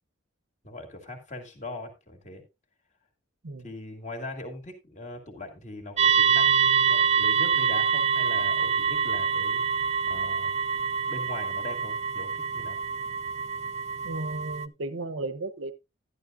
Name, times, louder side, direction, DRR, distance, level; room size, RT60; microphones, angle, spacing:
voice 1, 0.6-2.4 3.6-9.6 10.1-10.6 10.9-12.8, left 2 dB, 40° left, 2.2 m, -40 dB
sound 1, 6.0-14.7, right 7 dB, 35° right, 0.5 m, -25 dB
voice 2, 14.0-15.7, right 2 dB, 85° right, 0.8 m, -34 dB
12.0 x 11.0 x 2.5 m
head